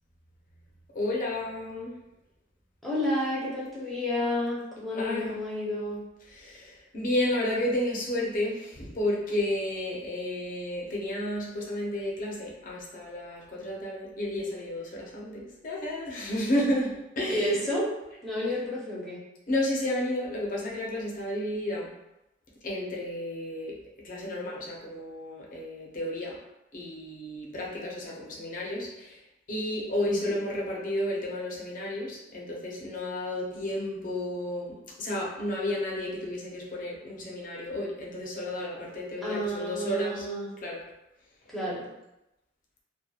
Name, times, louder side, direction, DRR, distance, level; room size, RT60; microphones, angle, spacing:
voice 1, 0.9-1.9 4.9-5.4 6.3-17.6 19.5-21.9 22.6-23.8 24.0-26.4 26.7-29.2 29.5-40.3 40.6-40.8, left 1 dB, 45° left, -3 dB, 0.6 m, -32 dB
voice 2, 2.8-6.0 17.3-17.9 18.2-19.2 30.1-30.3 39.2-40.6 41.5-41.9, left 1 dB, ahead, -8 dB, 0.6 m, -30 dB
2.8 x 2.1 x 2.3 m, 0.92 s
head